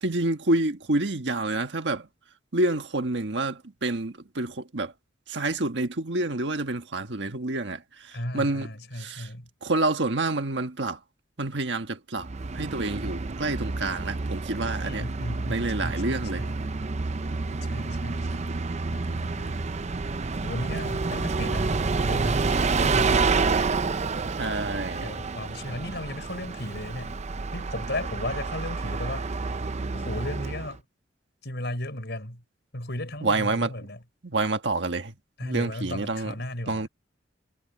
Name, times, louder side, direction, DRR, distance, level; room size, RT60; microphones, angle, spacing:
voice 1, 0.0-2.0 2.5-4.9 5.3-7.8 8.3-8.7 9.0-9.3 9.6-11.0 11.4-12.3 12.5-15.0 15.5-16.4 24.4-25.1 33.2-33.7 34.2-35.1 35.4-36.3 36.7-36.9, right 2 dB, 70° right, 1.5 m, -28 dB
voice 2, 8.1-9.5 14.8-16.6 17.5-18.6 18.9-19.7 20.4-22.5 22.8-23.3 25.0-27.1 27.5-29.2 29.9-30.8 31.4-32.4 32.7-34.0 35.4-36.9, left 1 dB, 65° left, 5.9 m, -35 dB
Bus, 12.2-30.8, right 4 dB, 40° right, 0.6 m, -29 dB
head